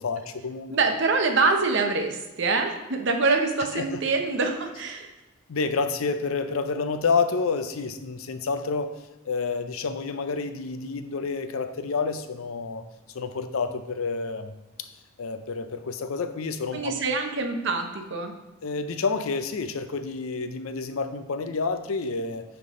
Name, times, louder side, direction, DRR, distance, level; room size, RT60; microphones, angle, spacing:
voice 1, 0.0-0.7 3.7-3.8 5.5-8.9 9.3-12.8 13.1-14.5 15.2-17.0 18.6-22.4, left 4 dB, 80° left, 9 dB, 0.5 m, -29 dB
voice 2, 0.7-5.1 16.7-18.3, right 3 dB, 60° right, 4 dB, 0.8 m, -25 dB
9.4 x 3.5 x 3.7 m, 1.0 s
head